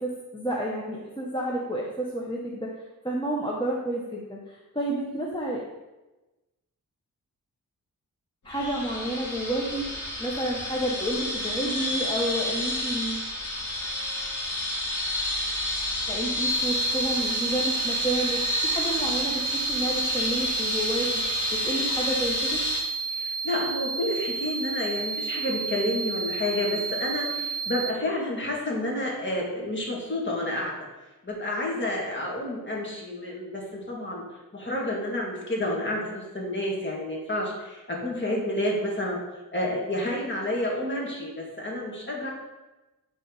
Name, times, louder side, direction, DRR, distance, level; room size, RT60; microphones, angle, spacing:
voice 1, 0.0-2.7 3.0-5.6 8.4-9.8 10.2-13.2 16.1-19.4 19.7-22.6, right 1 dB, 15° left, -3 dB, 1.2 m, -30 dB
sound 1, 8.5-22.8, left 1 dB, 60° left, 2.5 m, -30 dB
sound 2, 16.5-27.9, right 6 dB, 45° right, 1.5 m, -31 dB
voice 2, 23.1-30.8 31.2-34.2 34.5-39.2 39.5-42.3, left 1 dB, 35° left, -3 dB, 2.5 m, -30 dB
10.5 x 4.2 x 4.1 m, 1.1 s
cardioid pair, 80°, 34 cm